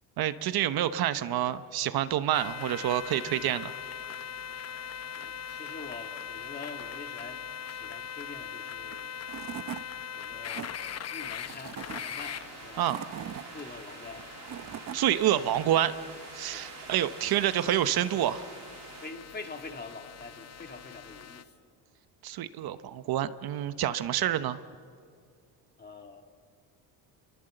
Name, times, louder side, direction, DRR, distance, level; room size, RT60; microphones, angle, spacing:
voice 1, 0.2-3.7 12.8-13.0 14.9-15.9 16.3-18.5 22.2-24.6, right 12 dB, 65° right, 12 dB, 1.0 m, -28 dB
sound 1, 2.3-21.4, left 8 dB, 40° left, 0.9 m, -41 dB
voice 2, 5.1-7.4 7.7-9.2 10.1-10.8 11.1-12.9 13.5-14.3 16.5-16.7 17.7-17.8 19.0-21.5 25.8-26.2, left 3 dB, 25° left, 4 dB, 2.3 m, -45 dB
Tools / Wood, 8.9-9.0 9.3-9.8 10.3-10.7 11.4-12.0 12.6-13.4 14.2-15.0, right 10 dB, 45° right, 0.8 m, -39 dB
sound 2, 11.5-19.1, right 9 dB, 80° right, 2.2 m, -48 dB
29.0 x 23.5 x 7.9 m, 2.1 s
cardioid pair, 130°, 40 cm